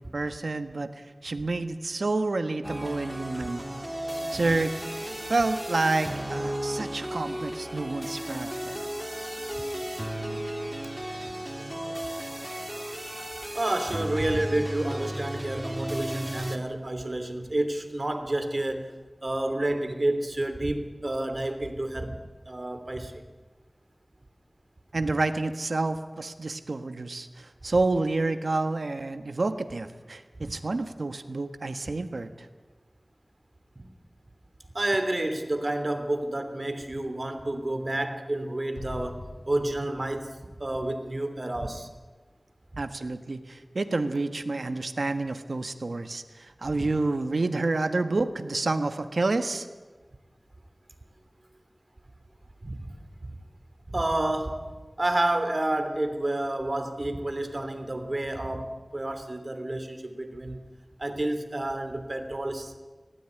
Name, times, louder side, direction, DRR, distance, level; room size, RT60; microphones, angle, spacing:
voice 1, 0.0-3.6 4.3-4.8 5.3-8.8 24.9-32.5 42.8-49.7, right 3 dB, 85° right, 8 dB, 1.4 m, -29 dB
sound 1, 2.6-16.6, right 1 dB, 15° right, 2.4 m, -34 dB
voice 2, 13.5-18.9 19.2-22.2 22.5-23.2 30.4-30.5 34.7-40.3 40.6-41.9 42.7-42.8 46.7-46.9 52.6-52.9 53.2-53.4 53.9-54.6 55.0-60.6 61.0-62.8, right 1 dB, 45° right, 8 dB, 2.9 m, -30 dB
Explosion, 38.7-42.0, left 2 dB, 90° left, 7.0 m, -45 dB
19.5 x 17.5 x 10.0 m, 1.3 s
wide cardioid pair, 50°, 0 cm